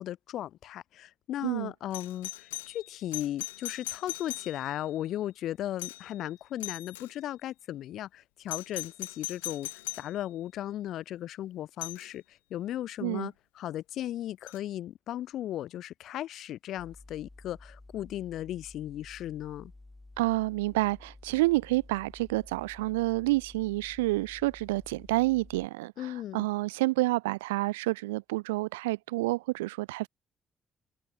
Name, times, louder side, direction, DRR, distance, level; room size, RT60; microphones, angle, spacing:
voice 1, 0.0-19.7 26.0-26.5, left 12 dB, 70° left, 2.1 m, -36 dB
Doorbell, 1.9-4.9 5.8-6.2 6.6-7.1 8.5-10.1 11.8-12.1 14.5-14.6, left 18 dB, 90° left, 1.3 m, -39 dB
sound 1, 16.8-25.7, left 2 dB, 20° left, 2.7 m, -52 dB
voice 2, 20.2-30.1, right 20 dB, 85° right, 0.8 m, -29 dB
hypercardioid pair, 45°, 0 cm